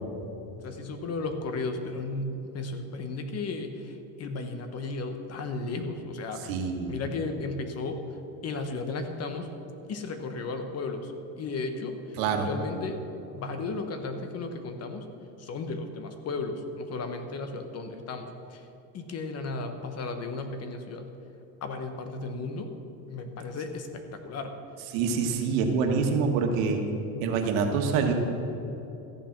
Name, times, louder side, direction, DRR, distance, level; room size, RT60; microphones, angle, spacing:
voice 1, 0.6-6.6 6.9-8.0 8.4-9.5 9.9-13.0 13.3-15.1 15.4-18.7 18.9-21.1 21.6-22.7 23.1-24.6, left 3 dB, 40° left, 7 dB, 1.1 m, -34 dB
voice 2, 6.5-7.0 12.2-12.5 24.9-26.8 27.2-28.1, right 5 dB, 80° right, 4 dB, 1.6 m, -26 dB
14.0 x 7.4 x 5.9 m, 2.9 s
cardioid pair, 125°, 40 cm